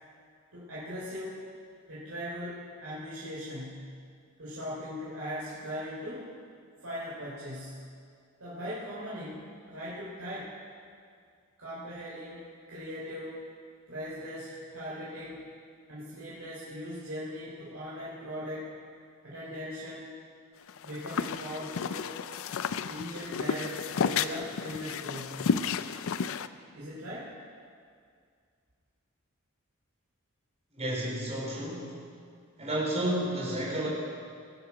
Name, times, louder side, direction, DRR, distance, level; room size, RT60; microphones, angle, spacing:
voice 1, 0.5-1.4 1.9-4.0 4.4-6.3 6.8-7.9 8.4-10.5 11.6-13.4 13.9-15.4 15.9-18.7 19.2-20.1 20.8-22.1 22.9-25.5 26.7-27.3, equal, 85° right, -9 dB, 3.6 m, -39 dB
sound 1, 20.7-26.5, left 6 dB, 65° left, 0.4 m, -32 dB
voice 2, 30.7-32.0 32.6-33.9, right 1 dB, 30° right, -4 dB, 4.0 m, -31 dB
19.5 x 8.0 x 5.9 m, 2.2 s
head